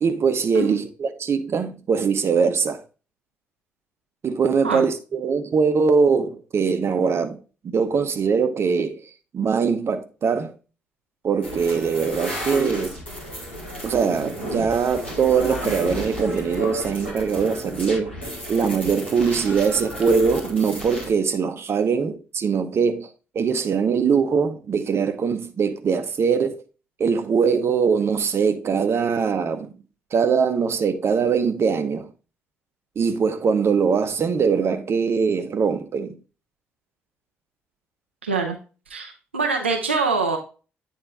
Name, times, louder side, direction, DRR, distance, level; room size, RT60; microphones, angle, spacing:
voice 1, 0.0-2.8 4.2-7.4 7.6-9.0 9.3-10.5 11.2-13.0 13.8-18.2 18.5-23.1 23.3-26.6 27.0-29.7 30.1-32.1 33.0-36.2, right 5 dB, 45° right, 0.8 m, -22 dB
sound 1, 11.4-21.1, equal, 90° left, 1.4 m, -33 dB
voice 2, 38.2-38.6 38.9-40.4, right 4 dB, 85° right, 0.5 m, -24 dB
8.8 x 3.7 x 3.6 m
figure-of-eight pair, 40°, 6 cm